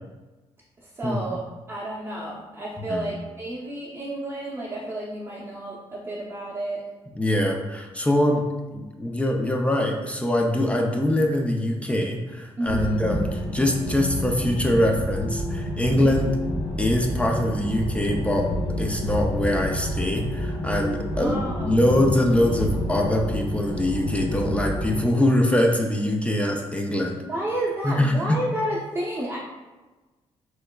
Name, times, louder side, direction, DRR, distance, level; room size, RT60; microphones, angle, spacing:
voice 1, 0.8-1.4 1.7-6.8 12.6-13.0 15.9-16.1 21.2-22.0 27.3-29.4, right 1 dB, 25° right, -7 dB, 0.7 m, -31 dB
voice 2, 7.2-8.5 8.7-16.3 16.8-27.2 27.8-28.4, left 1 dB, 10° left, 2 dB, 0.4 m, -23 dB
sound 1, 12.6-25.0, equal, 80° left, 0.9 m, -29 dB
3.4 x 3.1 x 2.2 m, 1.2 s
cardioid pair, 85°, 11 cm